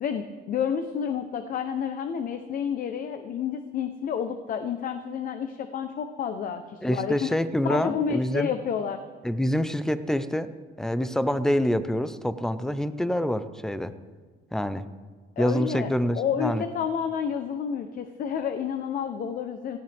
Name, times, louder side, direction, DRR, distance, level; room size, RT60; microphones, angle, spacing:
voice 1, 0.0-7.3 7.6-9.0 15.4-19.8, left 7 dB, 55° left, 8 dB, 0.9 m, -30 dB
voice 2, 6.8-8.5 9.2-10.5 10.8-13.9 14.5-14.9 15.4-16.6, equal, 5° left, 12 dB, 0.7 m, -26 dB
18.5 x 15.5 x 3.5 m, 1.5 s
cardioid pair, 110°, 17 cm